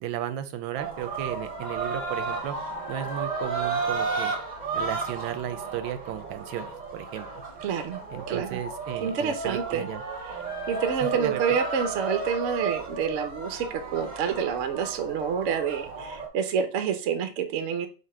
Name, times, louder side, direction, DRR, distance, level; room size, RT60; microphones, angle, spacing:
voice 1, 0.0-2.6 2.9-4.3 4.7-7.4 8.1-10.0 11.1-11.6, right 11 dB, 90° right, 11 dB, 1.4 m, -34 dB
sound 1, 0.7-16.3, right 4 dB, 35° right, 0.7 m, -33 dB
voice 2, 7.6-8.0 8.3-8.6 9.0-9.9 10.7-17.9, right 7 dB, 65° right, 8 dB, 0.7 m, -28 dB
4.2 x 2.7 x 4.2 m, 0.35 s
omnidirectional pair, 2.1 m